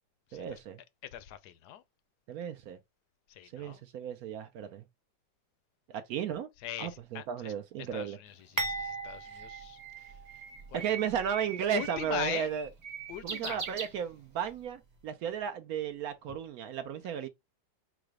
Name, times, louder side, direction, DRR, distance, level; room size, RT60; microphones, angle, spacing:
voice 1, 0.3-0.8 2.3-2.8 3.5-4.8 5.9-6.5 6.8-8.2 9.3-9.4 10.7-12.7 13.2-17.3, right 8 dB, 75° right, 0.8 m, -34 dB
voice 2, 1.1-1.8 3.3-3.8 6.6-7.5 7.9-9.8 10.7-10.8 11.7-12.5 13.1-13.6, left 11 dB, 70° left, 1.0 m, -40 dB
Bird, 8.3-14.5, right 6 dB, 55° right, 1.5 m, -43 dB
sound 1, 8.6-10.7 11.1-11.2 12.1-12.3, right 1 dB, 15° right, 0.7 m, -38 dB
4.8 x 2.1 x 4.7 m
omnidirectional pair, 2.0 m